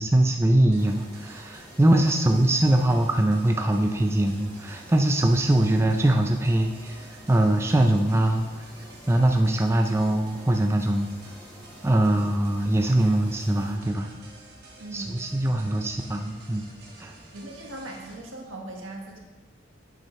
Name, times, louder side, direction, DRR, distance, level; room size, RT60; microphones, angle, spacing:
voice 1, 0.0-8.5 9.1-11.1 11.8-14.1 14.9-16.6 17.0-17.1, right 1 dB, 15° right, 3 dB, 0.4 m, -22 dB
sound 1, 0.7-18.2, right 2 dB, 50° right, 1.5 m, -50 dB
sound 2, 0.8-13.8, equal, 10° left, 0.9 m, -48 dB
voice 2, 14.8-15.8 17.3-19.2, right 1 dB, 85° right, 0 dB, 1.5 m, -40 dB
7.6 x 7.5 x 3.2 m, 1.2 s
head